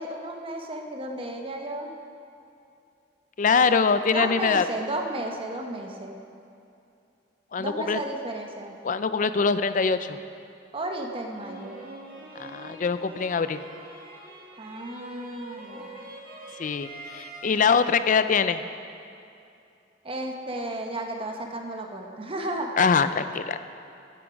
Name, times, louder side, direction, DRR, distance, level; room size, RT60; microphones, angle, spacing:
voice 1, 0.0-1.9 4.1-6.2 7.6-8.7 10.7-11.8 14.6-16.1 20.0-22.7, right 1 dB, 30° right, 2 dB, 1.1 m, -33 dB
voice 2, 3.4-4.6 7.5-8.0 8.8-10.2 12.4-13.6 16.6-18.6 22.8-23.6, left 5 dB, 45° left, 12 dB, 0.5 m, -23 dB
sound 1, 11.3-17.6, right 2 dB, 55° right, 1.9 m, -44 dB
16.0 x 8.2 x 5.2 m, 2.6 s
head